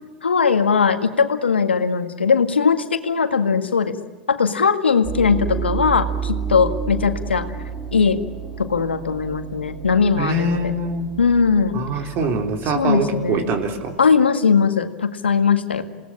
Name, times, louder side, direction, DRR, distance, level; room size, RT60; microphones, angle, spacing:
voice 1, 0.2-4.0 4.3-7.5 7.9-8.2 8.6-10.7 11.2-11.8 12.7-13.5 14.0-15.8, left 5 dB, 85° left, 8 dB, 1.8 m, -19 dB
sound 1, 5.0-13.7, right 7 dB, 5° right, 4.6 m, -31 dB
voice 2, 10.2-11.1 11.7-13.9, right 2 dB, 40° right, 5 dB, 3.7 m, -23 dB
28.5 x 18.5 x 8.9 m, 1.4 s
hypercardioid pair, 95°, 6 cm